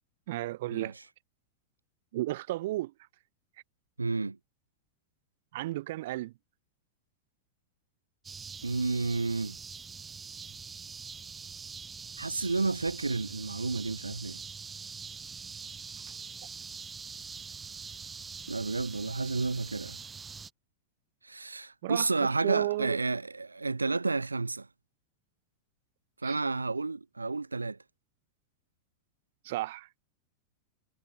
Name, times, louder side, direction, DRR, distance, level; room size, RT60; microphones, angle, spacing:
voice 1, 0.3-1.0 2.1-2.9 5.5-6.3 21.8-23.0 26.2-26.4 29.4-29.9, right 17 dB, 55° right, 0.9 m, -33 dB
voice 2, 4.0-4.4 8.6-9.6 12.2-14.4 18.5-20.0 21.2-24.7 26.2-27.8, right 3 dB, 80° right, 1.4 m, -31 dB
sound 1, 8.2-20.5, right 5 dB, 15° right, 3.6 m, -44 dB
figure-of-eight pair, 90°, 0 cm